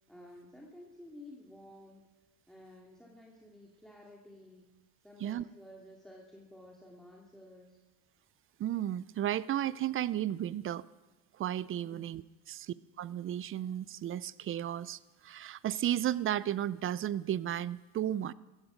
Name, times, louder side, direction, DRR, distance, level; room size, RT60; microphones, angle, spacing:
voice 1, 0.0-2.1 2.5-4.7 5.0-7.8 11.8-12.1, left 1 dB, ahead, -2 dB, 2.3 m, -53 dB
voice 2, 8.6-10.8 11.4-12.2 12.5-18.3, right 11 dB, 30° right, 20 dB, 0.4 m, -34 dB
15.5 x 15.0 x 5.2 m, 1.2 s
supercardioid pair, 95°, 46 cm